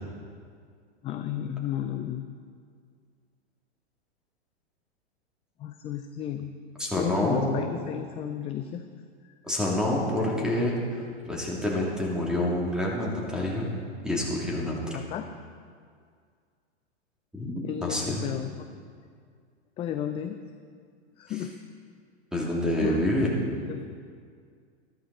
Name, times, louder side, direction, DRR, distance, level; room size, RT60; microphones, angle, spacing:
voice 1, 1.0-2.3 5.6-6.5 7.0-8.8 9.2-9.3 10.2-10.3 14.9-15.3 17.6-18.7 19.8-20.4 21.2-21.5 22.8-23.0 23.7-23.8, left 10 dB, 15° left, 7 dB, 0.4 m, -33 dB
voice 2, 6.8-7.6 9.4-13.7 14.0-15.0 17.3-17.5 17.8-18.2 22.3-23.3, left 1 dB, ahead, -4 dB, 3.0 m, -27 dB
13.0 x 13.0 x 4.3 m, 2.1 s
hypercardioid pair, 115°, 34 cm